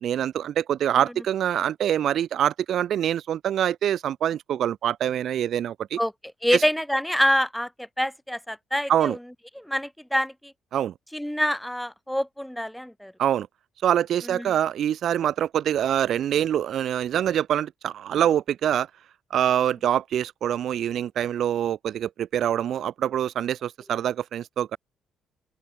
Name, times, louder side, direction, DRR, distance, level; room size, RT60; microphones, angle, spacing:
voice 1, 0.0-6.0 6.5-6.6 8.9-9.2 10.7-10.9 13.2-13.5 13.8-18.9 19.3-24.8, right 10 dB, 65° right, 1.8 m, -25 dB
voice 2, 6.4-9.2 9.5-10.5 11.1-13.1 14.2-14.5, equal, 5° left, 6.6 m, -26 dB
open air
hypercardioid pair, 55°, 0 cm